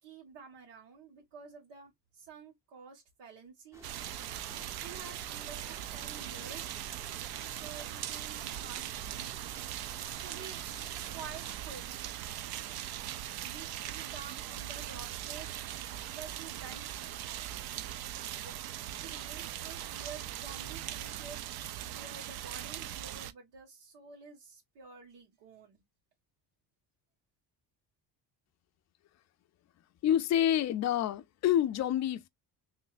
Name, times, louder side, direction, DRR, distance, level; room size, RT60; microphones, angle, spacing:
voice 1, 0.0-3.9 4.8-6.8 7.5-9.4 10.2-10.6 11.1-11.9 13.4-15.5 16.1-17.2 18.4-18.5 18.9-21.4 21.8-25.8, right 5 dB, 80° right, 1.8 m, -50 dB
sound 1, 3.7-11.6, equal, 5° right, 0.8 m, -55 dB
sound 2, 3.8-23.3, right 12 dB, 60° right, 0.5 m, -40 dB
voice 2, 30.0-32.3, left 11 dB, 40° left, 0.4 m, -28 dB
3.2 x 3.1 x 2.4 m
cardioid pair, 150°, 42 cm